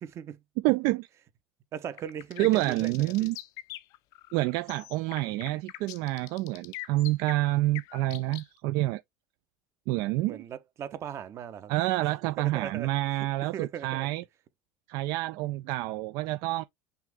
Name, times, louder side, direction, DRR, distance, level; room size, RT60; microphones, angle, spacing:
voice 1, 0.0-0.4 1.7-3.3 10.3-11.7 12.4-12.9 13.5-14.1, right 9 dB, 45° right, 0.9 m, -38 dB
voice 2, 0.6-1.1 2.4-3.4 4.3-9.0 9.9-10.4 11.7-14.2 14.9-16.6, right 18 dB, 65° right, 0.3 m, -28 dB
sound 1, 2.0-8.4, left 16 dB, 65° left, 0.5 m, -43 dB
5.8 x 2.6 x 3.5 m
hypercardioid pair, 85°, 7 cm